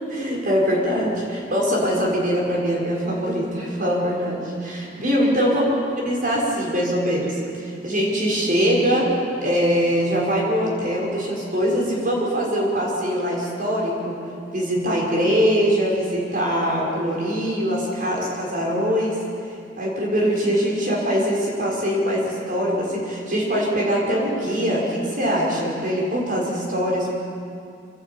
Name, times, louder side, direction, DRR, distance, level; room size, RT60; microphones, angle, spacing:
voice 1, 0.1-5.7 6.0-14.2 14.5-19.2 19.8-27.1, equal, 50° right, -3 dB, 5.8 m, -22 dB
27.0 x 11.5 x 9.0 m, 2.4 s
head